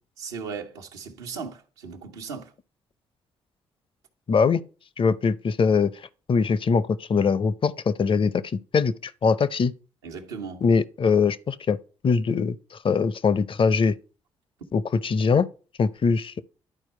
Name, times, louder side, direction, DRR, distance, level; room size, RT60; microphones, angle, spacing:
voice 1, 0.2-2.5 10.0-10.6, right 5 dB, 85° right, 1.0 m, -37 dB
voice 2, 4.3-4.6 5.0-5.9 6.3-8.4 8.7-9.7 10.6-11.8 12.0-14.0 14.7-15.5 15.8-16.4, left 5 dB, 40° left, 0.6 m, -22 dB
11.0 x 4.6 x 4.3 m
hypercardioid pair, 45°, 13 cm